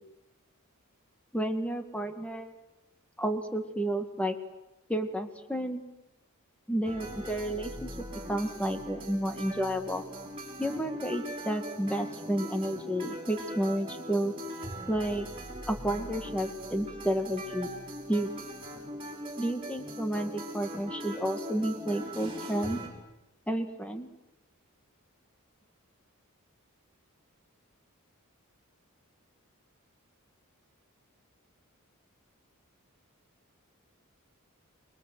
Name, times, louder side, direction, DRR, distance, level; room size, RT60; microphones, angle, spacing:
voice 1, 1.3-2.5 3.2-4.4 4.9-5.8 6.7-7.9 8.3-10.0 10.6-14.3 14.9-15.3 15.7-17.7 18.1-18.5 19.4-22.8 23.5-24.1, right 1 dB, 5° left, 7 dB, 2.0 m, -31 dB
sound 1, 6.8-22.9, right 1 dB, 25° right, 6.0 m, -41 dB
28.5 x 22.0 x 7.9 m, 0.93 s
head